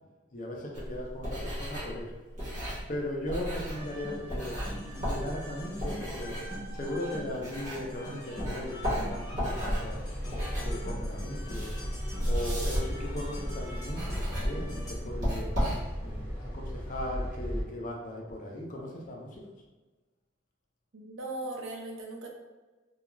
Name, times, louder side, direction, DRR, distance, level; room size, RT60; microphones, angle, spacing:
voice 1, 0.3-2.1 2.9-4.5 4.9-6.4 6.7-10.0 10.6-11.7 12.2-15.5 16.0-19.4, left 1 dB, 40° left, -1 dB, 0.5 m, -38 dB
sound 1, 0.7-8.1 8.4-16.2, equal, 40° right, 1.0 m, -34 dB
sound 2, 3.7-14.9, equal, 20° left, 0.8 m, -44 dB
sound 3, 9.4-17.6, equal, 10° right, 1.0 m, -37 dB
voice 2, 20.9-22.3, right 2 dB, 80° right, 0 dB, 0.5 m, -38 dB
2.3 x 2.3 x 3.0 m, 1.2 s
head